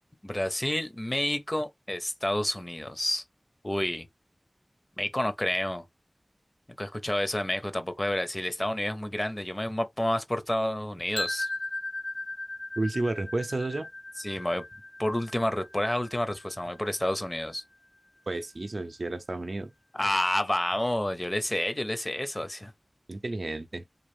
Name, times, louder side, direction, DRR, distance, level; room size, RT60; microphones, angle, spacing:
voice 1, 0.2-3.2 3.6-4.1 5.0-5.8 6.8-11.5 14.2-14.6 15.0-17.6 19.9-22.7, left 1 dB, 25° left, 0.7 m, -29 dB
sound 1, 11.2-17.1, left 2 dB, 50° left, 1.1 m, -37 dB
voice 2, 12.8-13.9 18.3-19.7 23.1-23.8, right 2 dB, 65° right, 0.5 m, -31 dB
3.8 x 2.4 x 3.3 m
wide cardioid pair, 60°, 0 cm